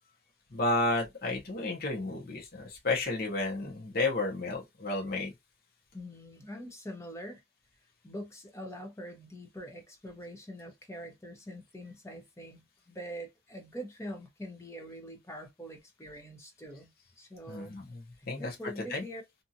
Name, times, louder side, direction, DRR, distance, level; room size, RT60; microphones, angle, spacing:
voice 1, 0.5-5.3 17.5-19.0, left 2 dB, 50° left, 0.8 m, -32 dB
voice 2, 5.9-7.4 8.0-17.8 18.2-19.2, equal, 15° left, 0.7 m, -44 dB
2.7 x 2.4 x 2.7 m
head